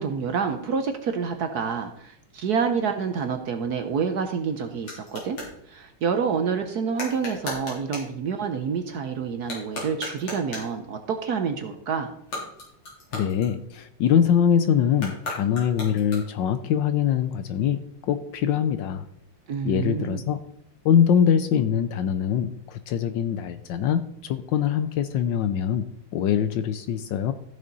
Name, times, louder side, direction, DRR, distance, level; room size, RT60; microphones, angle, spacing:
voice 1, 0.0-5.4 5.7-12.1 19.5-20.2, right 6 dB, 60° right, 6 dB, 1.1 m, -28 dB
sound 1, 4.5-5.6 6.9-8.2 9.4-10.8 12.1-14.0 14.9-16.5, left 2 dB, 90° left, 4.3 m, -37 dB
voice 2, 13.1-19.1 19.6-20.4 20.8-27.3, left 8 dB, 75° left, 11 dB, 1.1 m, -23 dB
14.0 x 6.5 x 4.0 m, 0.73 s
omnidirectional pair, 2.3 m